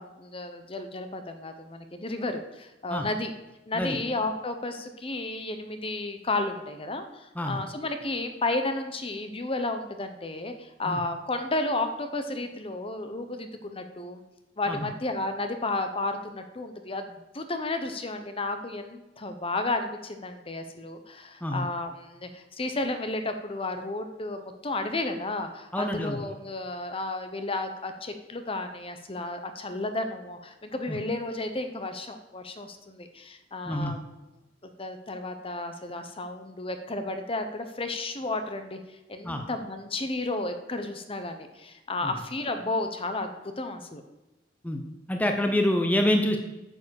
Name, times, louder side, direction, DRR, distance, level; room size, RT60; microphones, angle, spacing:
voice 1, 0.0-3.3 3.7-14.2 14.6-34.1 34.8-38.8 39.1-44.0, left 2 dB, 30° left, 7 dB, 1.0 m, -32 dB
voice 2, 25.7-26.2 30.9-31.0 33.7-33.9 39.2-39.4 44.6-44.8 45.1-46.4, left 1 dB, 10° left, 4 dB, 0.9 m, -26 dB
9.3 x 7.3 x 6.5 m, 1.0 s
head